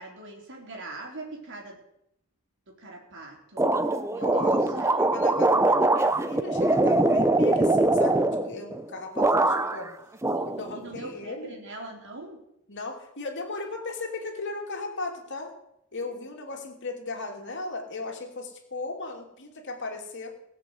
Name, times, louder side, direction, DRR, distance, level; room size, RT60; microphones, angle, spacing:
voice 1, 0.0-1.8 2.8-3.7 4.1-5.1 10.3-12.4 16.1-16.2, right 2 dB, 55° right, 1 dB, 3.9 m, -42 dB
sound 1, 3.6-8.8 9.2-9.9 10.2-11.1, right 2 dB, 15° right, 0.6 m, -23 dB
voice 2, 4.2-9.9 10.4-11.6 12.7-15.5 15.9-20.3, left 3 dB, 55° left, 2 dB, 2.8 m, -37 dB
18.5 x 6.8 x 7.9 m, 0.81 s
head